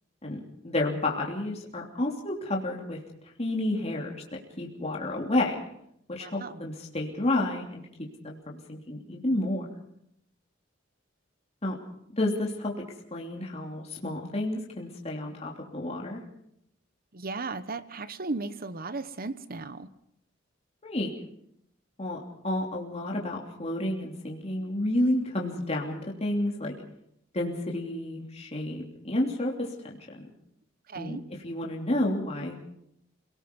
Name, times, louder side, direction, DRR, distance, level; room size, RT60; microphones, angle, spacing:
voice 1, 0.2-3.0 3.4-4.2 4.6-5.6 6.1-9.7 11.6-11.7 12.1-12.8 13.1-16.2 20.8-21.1 22.0-22.2 22.4-26.7 27.3-30.2 31.0-31.2 31.4-32.6, left 1 dB, 35° left, -1 dB, 3.1 m, -30 dB
voice 2, 6.2-6.6 17.1-19.9 30.9-31.2, right 3 dB, 50° right, 13 dB, 1.1 m, -36 dB
27.5 x 18.5 x 5.4 m, 0.73 s
head